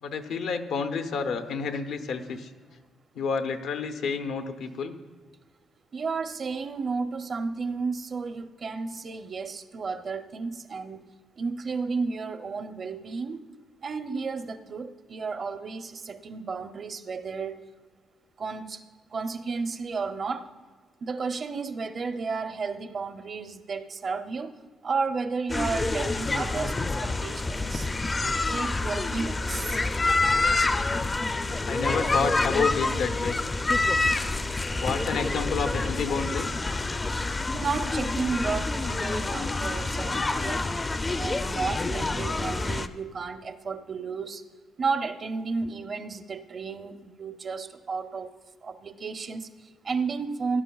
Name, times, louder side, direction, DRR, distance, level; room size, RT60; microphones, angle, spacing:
voice 1, 0.0-2.5 3.1-4.9 31.3-33.4 34.8-36.5, left 5 dB, 80° left, 6 dB, 0.7 m, -30 dB
voice 2, 5.9-13.4 13.8-17.6 18.4-18.8 19.1-20.5 21.0-24.6 24.8-27.9 28.2-29.8 37.5-40.7 41.1-44.4 44.8-48.3 48.6-50.6, right 4 dB, 45° right, 10 dB, 0.6 m, -32 dB
sound 1, 25.5-42.9, left 3 dB, 25° left, 0.4 m, -27 dB
17.0 x 11.0 x 2.3 m, 1.4 s
cardioid pair, 90°, 0 cm